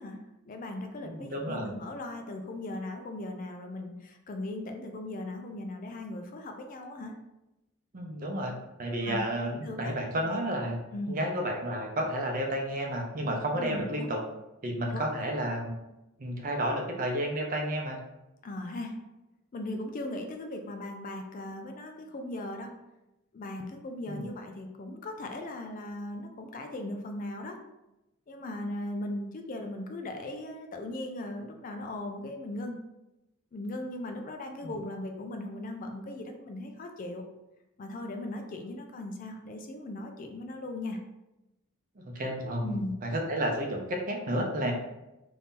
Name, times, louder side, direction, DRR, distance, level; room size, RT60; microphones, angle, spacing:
voice 1, 0.0-7.1 9.0-9.2 9.6-10.0 10.9-11.2 13.6-14.1 14.9-15.0 18.4-19.0 19.5-22.8 23.3-27.6 28.3-32.8 33.5-37.2 37.8-41.0 42.6-42.9, left 1 dB, 40° left, 4 dB, 0.4 m, -38 dB
voice 2, 1.0-1.7 7.9-8.5 8.8-10.8 11.1-14.2 14.6-15.7 16.2-18.0 24.1-24.2 34.6-34.7 42.1-42.7 43.0-44.7, right 1 dB, 40° right, 1 dB, 0.6 m, -31 dB
2.8 x 2.7 x 3.6 m, 0.94 s
head